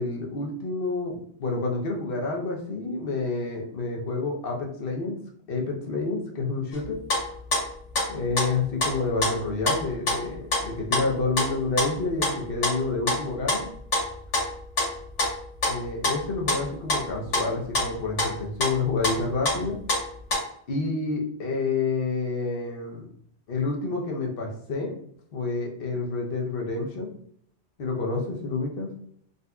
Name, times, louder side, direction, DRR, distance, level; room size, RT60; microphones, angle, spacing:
voice 1, 0.0-5.1 5.5-7.0 8.1-13.6 15.6-19.8 20.7-23.1 23.5-24.9 25.3-27.1 27.8-28.9, left 3 dB, 55° left, 0 dB, 0.9 m, -29 dB
sound 1, 6.7-6.8 7.1-19.6 19.9-20.4, left 2 dB, 85° left, 1.7 m, -27 dB
3.9 x 2.6 x 2.3 m, 0.65 s
omnidirectional pair, 1.2 m